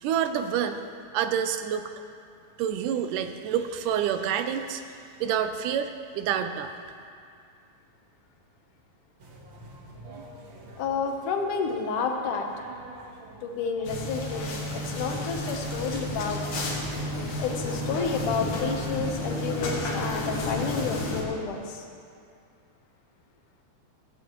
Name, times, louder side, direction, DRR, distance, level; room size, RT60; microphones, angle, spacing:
voice 1, 0.0-0.8 1.1-1.9 2.6-6.7, right 9 dB, 90° right, 8 dB, 2.3 m, -28 dB
sound 1, 9.2-18.2, right 2 dB, 45° right, 1.8 m, -49 dB
voice 2, 10.8-12.5 13.4-16.4 17.4-21.8, left 5 dB, 80° left, 3 dB, 2.6 m, -30 dB
sound 2, 13.8-21.2, left 1 dB, 60° left, 2.6 m, -31 dB
16.0 x 15.5 x 3.1 m, 2.4 s
omnidirectional pair, 3.6 m